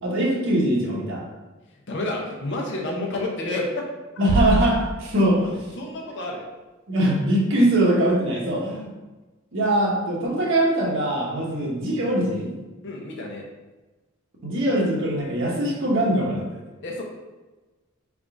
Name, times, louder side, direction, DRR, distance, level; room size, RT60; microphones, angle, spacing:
voice 1, 0.0-1.3 4.2-5.5 6.9-8.9 9.5-12.5 14.4-16.6, right 1 dB, 65° right, -3 dB, 1.2 m, -22 dB
voice 2, 1.9-3.8 5.2-5.5 5.8-6.4 8.3-8.4 11.5-11.7 12.8-13.4 16.8-17.0, left 2 dB, 60° left, 0 dB, 0.9 m, -30 dB
sound 1, 4.3-6.2, right 3 dB, 85° right, 0.3 m, -27 dB
3.8 x 3.6 x 3.6 m, 1.2 s
head